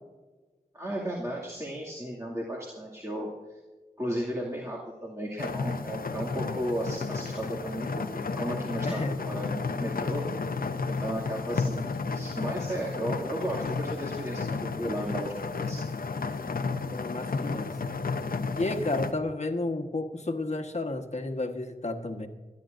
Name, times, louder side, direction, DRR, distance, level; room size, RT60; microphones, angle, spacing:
voice 1, 0.7-3.6 4.0-10.2 10.5-15.8, equal, 20° right, -5 dB, 2.4 m, -35 dB
Car Internal Gentle Rain On Hood, 5.4-19.1, left 4 dB, 70° left, 0.8 m, -32 dB
voice 2, 8.8-9.2 16.9-17.8 18.5-22.3, left 2 dB, 45° left, 5 dB, 1.4 m, -31 dB
26.5 x 10.5 x 2.6 m, 1.3 s
wide cardioid pair, 65°, 16 cm